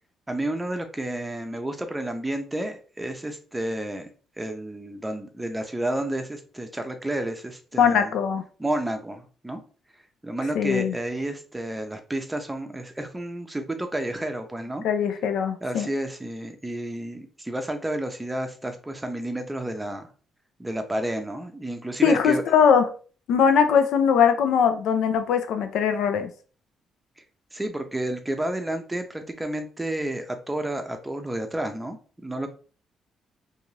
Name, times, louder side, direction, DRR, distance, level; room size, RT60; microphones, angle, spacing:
voice 1, 0.3-4.1 4.4-8.1 8.6-9.6 10.2-14.9 15.6-20.1 20.6-22.4 27.5-32.5, right 1 dB, 10° right, 6 dB, 0.6 m, -31 dB
voice 2, 7.8-8.4 10.5-10.9 14.8-15.9 22.0-22.9 23.3-26.3, left 7 dB, 80° left, 9 dB, 0.4 m, -21 dB
2.5 x 2.3 x 3.1 m, 0.39 s
cardioid pair, 90°, 0 cm